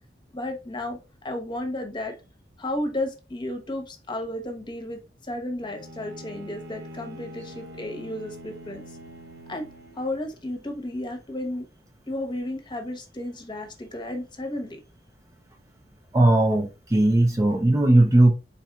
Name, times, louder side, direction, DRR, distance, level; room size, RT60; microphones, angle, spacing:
voice 1, 0.3-1.0 1.2-2.1 2.6-9.0 9.5-9.7 9.9-11.6 12.1-14.8, left 1 dB, 25° left, 1.0 m, -33 dB
Bowed string instrument, 5.6-10.4, left 1 dB, 70° right, 0.8 m, -44 dB
voice 2, 16.1-18.3, right 1 dB, 20° right, 0.5 m, -18 dB
4.3 x 4.1 x 2.3 m
head